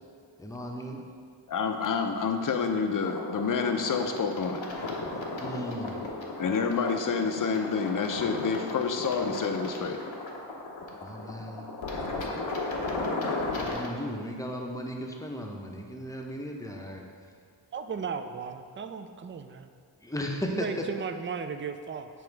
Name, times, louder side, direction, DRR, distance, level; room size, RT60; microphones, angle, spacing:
voice 1, 0.4-1.0 5.4-6.0 11.0-11.7 13.6-17.1 20.0-20.8, equal, 5° left, 1 dB, 0.7 m, -36 dB
voice 2, 1.5-4.6 6.4-10.0, left 5 dB, 45° left, 5 dB, 0.6 m, -28 dB
sound 1, 3.0-13.9, left 2 dB, 80° left, 0.9 m, -35 dB
voice 3, 17.7-19.7 20.5-22.1, right 6 dB, 30° right, 8 dB, 0.3 m, -36 dB
6.9 x 3.1 x 4.6 m, 2.2 s
cardioid pair, 55°, 45 cm